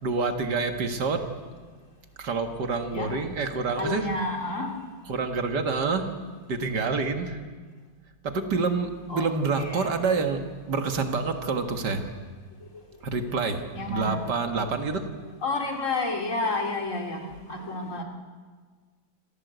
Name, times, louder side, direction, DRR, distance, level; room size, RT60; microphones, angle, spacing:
voice 1, 0.0-1.2 2.2-4.1 5.1-6.1 6.5-7.4 8.2-10.4 10.7-12.1 13.0-13.6 13.9-15.1 17.3-17.4, right 4 dB, 85° right, 6 dB, 2.4 m, -27 dB
voice 2, 3.8-4.7 9.1-9.3 9.5-9.9 13.7-14.2 15.4-18.0, left 2 dB, 50° left, 2 dB, 3.1 m, -30 dB
26.5 x 16.0 x 8.1 m, 1.5 s
omnidirectional pair, 1.8 m